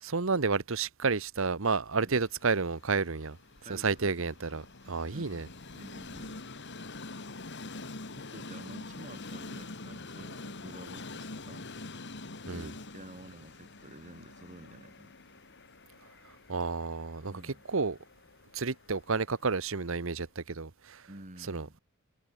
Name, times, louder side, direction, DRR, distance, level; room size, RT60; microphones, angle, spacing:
voice 1, 0.0-3.4 3.7-5.5 12.5-12.7 16.5-17.3 17.7-18.0 18.5-21.0 21.5-21.8, right 4 dB, 70° right, 1.1 m, -31 dB
Train, 2.0-20.1, left 3 dB, 60° left, 2.8 m, -46 dB
voice 2, 3.6-4.2 5.1-5.4 5.7-6.4 8.1-11.7 12.5-15.1 17.3-17.7 21.1-21.8, right 1 dB, 35° right, 2.7 m, -50 dB
head